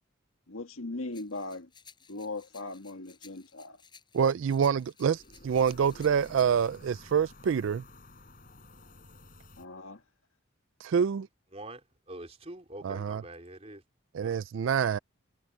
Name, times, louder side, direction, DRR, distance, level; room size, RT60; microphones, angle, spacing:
voice 1, 0.5-1.7 2.1-3.8 9.6-10.0, left 2 dB, 80° left, 1.8 m, -39 dB
sound 1, 1.1-6.8, left 6 dB, 20° left, 7.1 m, -57 dB
voice 2, 4.1-7.8 10.8-11.3 12.8-13.2 14.1-15.0, right 7 dB, 65° right, 0.3 m, -26 dB
sound 2, 5.1-9.7, left 2 dB, 40° left, 5.9 m, -52 dB
voice 3, 12.1-13.8 14.2-14.3, right 1 dB, 30° right, 3.7 m, -44 dB
head